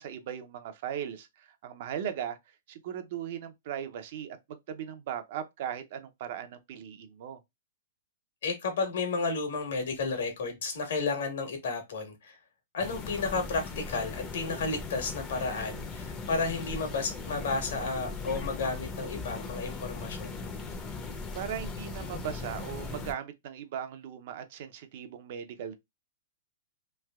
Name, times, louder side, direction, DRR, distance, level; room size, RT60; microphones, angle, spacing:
voice 1, 0.0-2.4 2.7-4.4 4.7-7.4 21.3-25.8, right 9 dB, 50° right, 0.5 m, -38 dB
voice 2, 8.4-12.4 12.7-20.5, left 4 dB, 70° left, 1.4 m, -32 dB
sound 1, 12.8-23.1, left 4 dB, 20° left, 0.6 m, -39 dB
3.2 x 2.7 x 2.3 m
hypercardioid pair, 155°, 0 cm